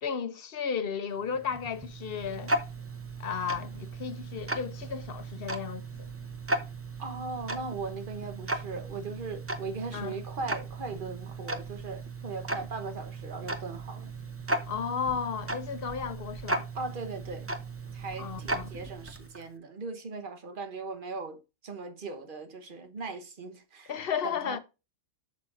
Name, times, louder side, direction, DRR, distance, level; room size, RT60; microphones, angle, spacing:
voice 1, 0.0-2.5 3.2-6.1 9.9-10.2 14.7-16.7 18.2-18.6 23.9-24.6, left 7 dB, 55° left, 0.8 m, -34 dB
Tick-tock, 1.2-19.5, right 2 dB, 15° right, 0.5 m, -36 dB
voice 2, 7.0-14.1 16.7-17.5 17.9-23.9 24.2-24.6, right 3 dB, 45° right, 1.2 m, -39 dB
8.1 x 6.5 x 2.5 m
omnidirectional pair, 1.3 m